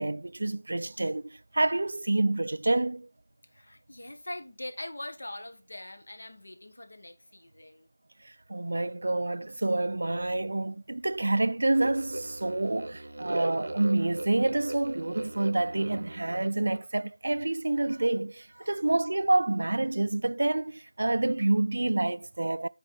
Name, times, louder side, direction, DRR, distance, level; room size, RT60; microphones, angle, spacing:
voice 1, 0.0-3.1 8.2-22.7, right 2 dB, 65° right, 0.3 m, -28 dB
voice 2, 3.5-7.9 18.6-18.8, left 1 dB, 75° left, 1.6 m, -42 dB
sound 1, 11.7-16.8, right 2 dB, 80° right, 0.8 m, -38 dB
9.8 x 4.3 x 4.3 m
figure-of-eight pair, 180°, 0 cm